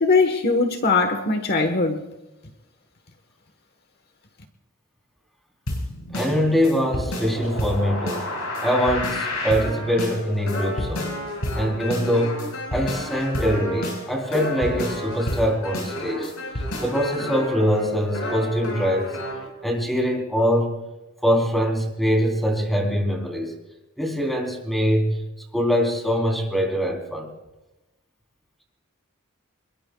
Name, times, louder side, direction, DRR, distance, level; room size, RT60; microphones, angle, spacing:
voice 1, 0.0-2.0, left 3 dB, 50° left, 6 dB, 1.3 m, -20 dB
sound 1, 5.7-19.5, left 1 dB, 90° left, 7.7 m, -30 dB
voice 2, 6.1-8.3 8.6-11.2 11.5-16.3 16.8-19.1 19.6-20.8 21.2-23.5 24.0-25.2 25.5-27.3, equal, ahead, 1 dB, 3.7 m, -23 dB
27.0 x 22.0 x 2.4 m, 1.0 s
head